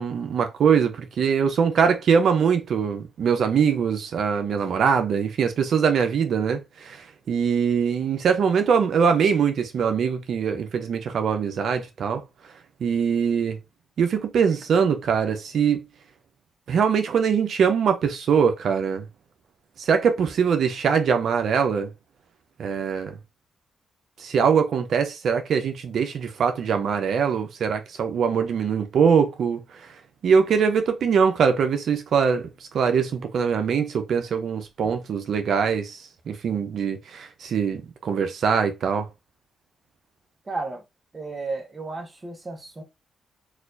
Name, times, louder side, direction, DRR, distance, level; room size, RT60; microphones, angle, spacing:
voice 1, 0.0-12.2 12.8-13.6 14.0-15.8 16.7-19.1 19.8-21.9 22.6-23.2 24.2-29.6 30.2-36.0 36.3-39.1, right 6 dB, 70° right, 0.7 m, -22 dB
voice 2, 40.5-40.8 41.1-42.8, right 3 dB, 30° right, 1.0 m, -33 dB
4.1 x 2.5 x 2.6 m
cardioid pair, 80°, 0 cm